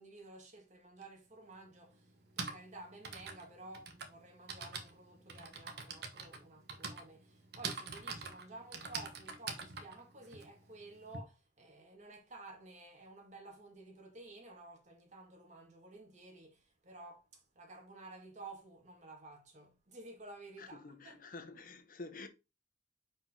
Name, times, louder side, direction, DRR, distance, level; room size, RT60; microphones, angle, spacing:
voice 1, 0.0-21.3, right 2 dB, 40° right, 2.1 m, -53 dB
Typing, 1.0-1.1 2.1-11.2, right 5 dB, 65° right, 1.3 m, -45 dB
voice 2, 20.6-22.3, left 3 dB, 50° left, 0.9 m, -49 dB
6.1 x 5.2 x 3.8 m
head